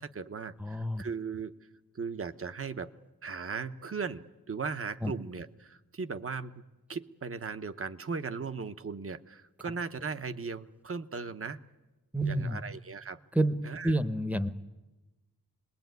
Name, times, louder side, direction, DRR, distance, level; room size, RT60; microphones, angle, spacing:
voice 1, 0.0-1.5 1.9-2.9 3.2-6.5 6.9-11.6 12.3-13.2 13.6-13.9, right 5 dB, 40° right, 10 dB, 0.9 m, -37 dB
voice 2, 0.6-1.0 5.0-5.1 12.1-12.6 13.3-13.6 13.8-14.5, right 1 dB, 5° right, 12 dB, 0.9 m, -28 dB
27.0 x 21.0 x 9.3 m, 1.1 s
wide cardioid pair, 175°, 36 cm